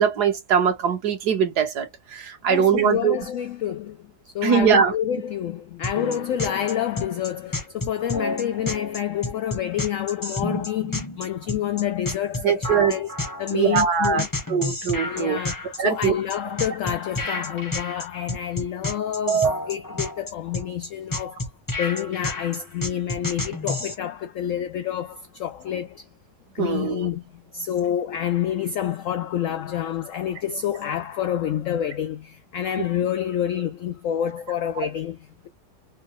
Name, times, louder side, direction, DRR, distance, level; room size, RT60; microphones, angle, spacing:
voice 1, 0.0-3.2 4.4-4.9 12.4-12.9 13.5-15.4 15.8-16.1 19.3-19.5 26.6-27.1, right 7 dB, 65° right, 1.6 m, -21 dB
voice 2, 2.5-4.0 4.3-13.1 13.4-14.3 15.0-21.5 21.8-26.1 26.5-35.5, left 10 dB, 80° left, 0.7 m, -28 dB
sound 1, 5.8-24.0, left 2 dB, 15° left, 0.7 m, -30 dB
4.5 x 2.2 x 3.1 m
omnidirectional pair, 1.9 m